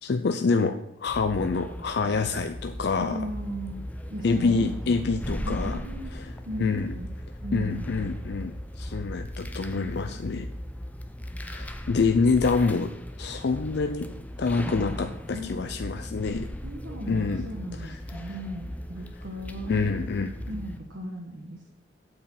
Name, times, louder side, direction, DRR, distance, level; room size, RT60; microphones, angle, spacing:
voice 1, 0.0-3.3 4.2-5.8 6.1-6.3 6.6-7.0 7.5-10.5 11.4-12.9 13.2-14.1 14.4-16.5 17.1-17.5 17.7-18.3 19.7-20.3, left 4 dB, 60° left, 7 dB, 0.5 m, -27 dB
sound 1, 1.1-20.8, equal, 10° left, 0.6 m, -37 dB
voice 2, 3.0-3.8 4.1-5.0 5.4-6.1 6.4-7.1 7.4-8.1 15.3-15.5 16.6-21.8, equal, 85° right, 0 dB, 1.3 m, -37 dB
8.5 x 4.9 x 7.2 m, 0.79 s
head